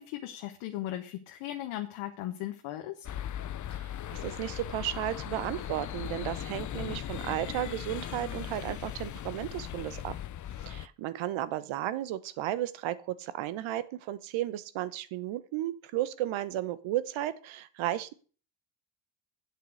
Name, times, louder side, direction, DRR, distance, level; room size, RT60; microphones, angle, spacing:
voice 1, 0.0-3.1, left 13 dB, 80° left, 5 dB, 1.2 m, -37 dB
sound 1, 3.0-10.9, left 11 dB, 40° left, 0.6 m, -38 dB
voice 2, 3.7-10.2 10.7-18.1, right 13 dB, 70° right, 16 dB, 1.0 m, -34 dB
8.2 x 7.8 x 6.3 m, 0.39 s
supercardioid pair, 65°, 49 cm